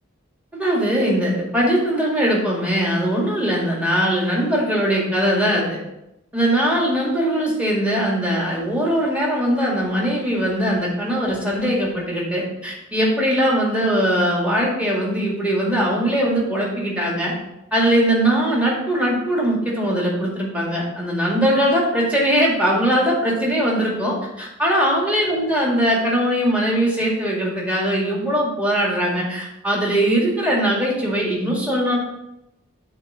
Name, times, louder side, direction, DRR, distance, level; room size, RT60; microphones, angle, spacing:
voice 1, 0.5-5.8 6.3-17.3 17.7-32.0, equal, 5° right, -4 dB, 2.0 m, -20 dB
8.1 x 3.8 x 6.2 m, 0.88 s
head